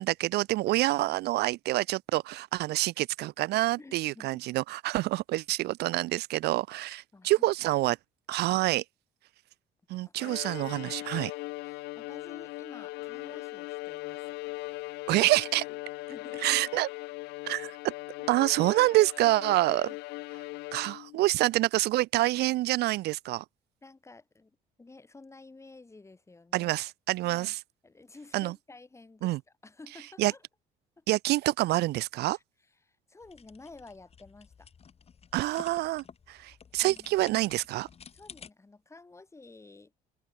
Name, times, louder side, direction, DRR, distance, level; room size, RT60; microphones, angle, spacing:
voice 1, 0.0-8.0 8.3-8.8 9.9-11.3 15.1-15.6 16.4-16.9 17.4-17.9 18.3-19.9 20.7-23.4 26.5-27.6 28.3-28.5 29.2-29.4 30.2-30.3 31.1-32.4 35.3-37.9, right 17 dB, 75° right, 0.6 m, -27 dB
voice 2, 3.8-4.4 7.1-7.5 10.1-10.4 11.6-14.4 16.1-16.6 19.9-20.0 23.8-26.7 27.2-27.6 27.8-30.4 31.0-31.1 32.3-32.4 32.8-34.7 36.8-37.1 38.1-39.9, left 3 dB, 15° left, 3.6 m, -52 dB
Bowed string instrument, 10.2-21.2, left 20 dB, 90° left, 1.7 m, -39 dB
sound 1, 33.2-38.5, left 6 dB, 35° left, 3.4 m, -52 dB
open air
cardioid pair, 110°, 17 cm